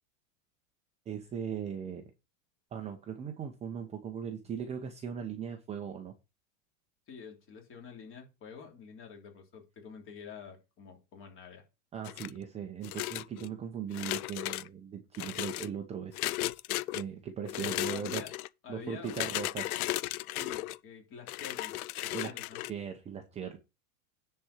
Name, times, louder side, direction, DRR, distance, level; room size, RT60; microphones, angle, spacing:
voice 1, 1.1-2.0 2.7-6.1 11.9-16.2 16.9-18.3 18.7-19.7 22.1-22.3 22.7-23.6, right 8 dB, 15° right, 0.8 m, -39 dB
voice 2, 7.1-11.6 17.6-18.3 18.6-19.3 20.3-22.6, left 6 dB, 30° left, 3.0 m, -48 dB
sound 1, 12.0-12.4 12.8-13.5 13.9-14.7 15.1-15.7 16.1-17.0 17.4-18.5 19.0-20.8 21.3-22.7, left 17 dB, 75° left, 0.6 m, -35 dB
10.0 x 4.5 x 6.4 m
supercardioid pair, 160°, 43 cm